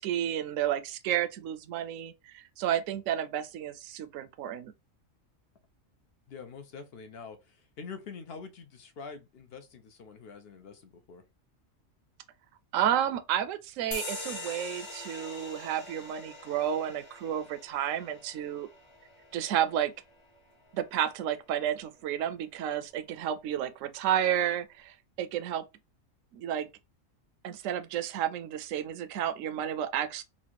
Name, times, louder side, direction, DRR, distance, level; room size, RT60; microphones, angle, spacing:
voice 1, 0.0-4.7 12.7-18.7 19.3-19.9 20.7-25.6 26.3-26.7 27.4-30.2, right 10 dB, 75° right, 0.9 m, -31 dB
voice 2, 6.3-11.2, left 5 dB, 60° left, 0.8 m, -45 dB
sound 1, 13.9-21.0, left 2 dB, 40° left, 0.4 m, -44 dB
4.2 x 2.4 x 2.9 m
omnidirectional pair, 1.4 m